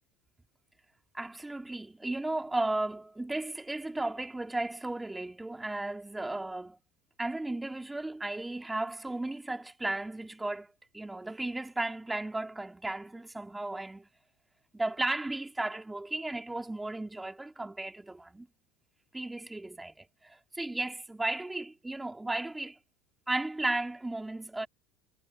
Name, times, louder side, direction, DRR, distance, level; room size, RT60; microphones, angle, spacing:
voice 1, 1.1-6.8 7.2-14.1 14.7-18.5 19.1-22.8 23.3-24.7, right 2 dB, 10° right, 3.4 m, -35 dB
figure-of-eight pair, 70°, 0 cm